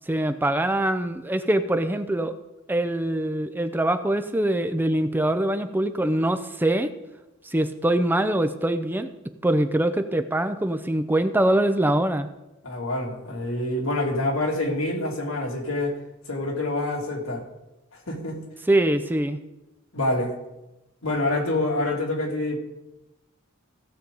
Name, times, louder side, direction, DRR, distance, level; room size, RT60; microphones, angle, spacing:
voice 1, 0.1-2.4 2.7-6.9 7.4-9.1 9.4-12.3 18.7-19.4, right 1 dB, 10° right, 9 dB, 0.5 m, -23 dB
voice 2, 12.6-15.9 16.3-17.4 18.1-18.4 19.9-20.3 21.0-22.6, left 2 dB, 90° left, -1 dB, 2.5 m, -26 dB
16.5 x 7.0 x 3.9 m, 0.96 s
head